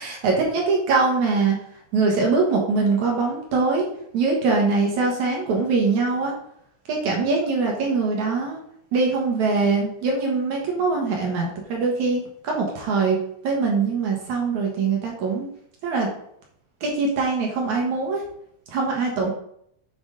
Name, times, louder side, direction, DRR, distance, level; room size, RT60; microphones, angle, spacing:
voice 1, 0.0-1.6 1.9-3.9 4.1-6.3 6.9-8.6 8.9-13.2 13.4-15.5 15.8-16.1 16.8-18.2 18.7-19.3, right 4 dB, 60° right, -1 dB, 2.5 m, -22 dB
7.8 x 6.1 x 4.0 m, 0.70 s
omnidirectional pair, 4.2 m